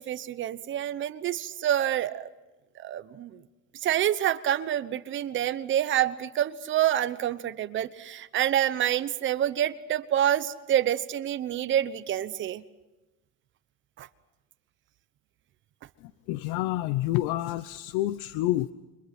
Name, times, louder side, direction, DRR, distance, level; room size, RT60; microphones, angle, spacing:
voice 1, 0.0-2.3 2.8-3.4 3.8-12.6 14.0-14.1, right 11 dB, 40° right, 14 dB, 1.1 m, -27 dB
voice 2, 16.3-18.7, left 15 dB, 80° left, 14 dB, 0.9 m, -28 dB
29.0 x 25.0 x 6.0 m, 1.1 s
cardioid pair, 160°, 31 cm